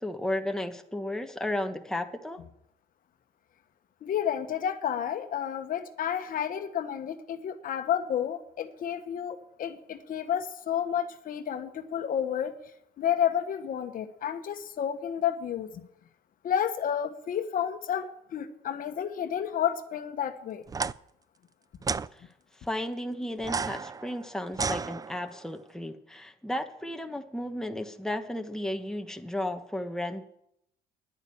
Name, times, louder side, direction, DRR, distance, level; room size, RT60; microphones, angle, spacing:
voice 1, 0.0-2.4 22.1-22.3 22.6-30.2, left 1 dB, 5° left, 5 dB, 1.2 m, -34 dB
voice 2, 4.0-12.5 13.0-15.8 16.4-20.6, left 9 dB, 60° left, 9 dB, 1.2 m, -31 dB
sound 1, 20.7-20.9 21.8-22.1 23.4-25.4, right 5 dB, 20° right, 0.4 m, -32 dB
10.5 x 9.3 x 8.7 m, 0.76 s
cardioid pair, 90°, 17 cm